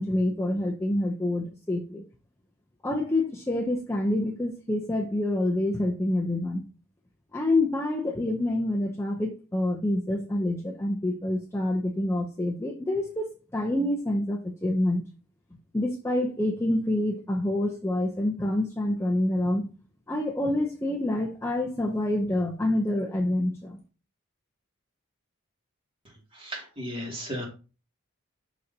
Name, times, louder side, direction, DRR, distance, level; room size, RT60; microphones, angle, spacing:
voice 1, 0.0-2.0 2.8-6.6 7.3-15.0 15.7-19.7 20.1-23.8, left 1 dB, 10° left, 0.6 m, -27 dB
voice 2, 26.3-27.5, equal, 25° right, 2.5 m, -35 dB
11.5 x 4.1 x 2.8 m
head